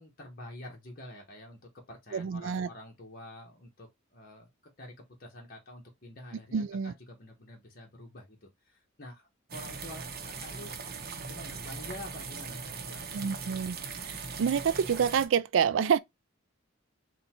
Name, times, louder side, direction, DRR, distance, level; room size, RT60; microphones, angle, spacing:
voice 1, 0.0-1.6 1.9-4.5 4.8-4.9 5.2-10.8 11.2-13.3, left 1 dB, 50° left, 1.2 m, -47 dB
voice 2, 2.1-2.7 6.5-6.9 13.1-13.8 14.0-16.0, right 7 dB, 70° right, 0.4 m, -27 dB
sound 1, 9.5-15.3, right 5 dB, 50° right, 0.8 m, -40 dB
4.0 x 2.4 x 4.2 m
head